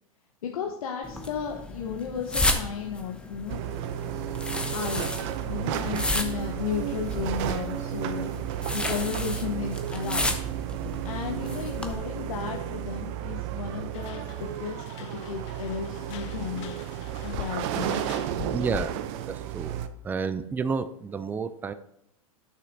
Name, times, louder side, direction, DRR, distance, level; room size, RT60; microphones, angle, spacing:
voice 1, 0.4-3.6 4.7-8.3 8.7-10.4 11.0-16.8 17.2-18.1, left 7 dB, 85° left, 1 dB, 0.9 m, -34 dB
sound 1, 1.0-11.9, left 1 dB, 5° left, 0.8 m, -33 dB
sound 2, 3.5-19.9, right 11 dB, 50° right, 0.6 m, -33 dB
sound 3, 13.9-19.1, left 12 dB, 55° left, 0.4 m, -43 dB
voice 2, 18.5-18.9 19.3-21.7, right 5 dB, 10° right, 12 dB, 0.3 m, -30 dB
11.5 x 6.6 x 2.6 m, 0.77 s
hypercardioid pair, 120°, 18 cm